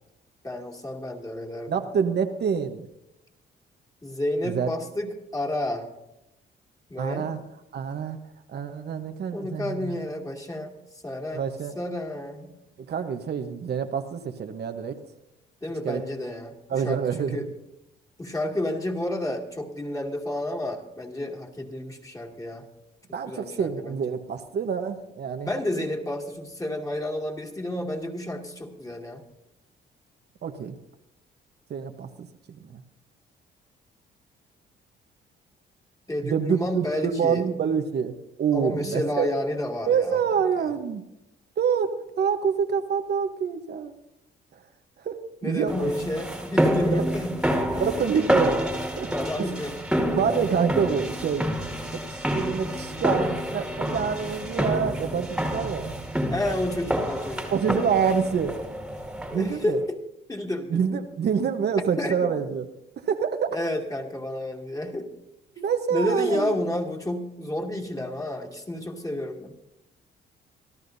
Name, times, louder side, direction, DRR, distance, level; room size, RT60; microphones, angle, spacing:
voice 1, 0.4-1.8 4.0-5.9 6.9-7.3 9.3-10.7 11.0-11.4 11.7-12.5 15.6-17.5 18.2-22.7 23.3-24.0 25.4-29.2 36.1-37.5 38.5-40.2 40.6-40.7 45.4-47.4 47.7-48.0 49.1-49.8 56.3-58.0 59.3-60.0 60.3-60.9 62.0-62.3 63.5-65.1 65.9-69.5, left 1 dB, 15° left, 1 dB, 2.5 m, -30 dB
voice 2, 1.7-2.9 4.4-4.7 7.0-7.4 7.7-8.2 8.5-9.9 11.3-11.7 12.9-15.0 15.8-16.0 16.7-17.5 23.1-25.5 30.4-30.7 31.7-32.8 36.2-38.1 38.4-39.3 39.9-41.0 41.6-43.9 45.0-45.2 45.4-45.9 46.9-47.0 47.8-48.6 49.0-49.1 50.1-51.5 51.9-55.9 57.5-58.6 59.3-59.8 60.7-62.7 63.0-63.6 65.6-66.6, right 7 dB, 55° right, 6 dB, 1.1 m, -26 dB
sound 1, 45.7-59.6, equal, 5° right, 2.1 m, -28 dB
25.5 x 13.5 x 2.7 m, 0.88 s
cardioid pair, 90°, 20 cm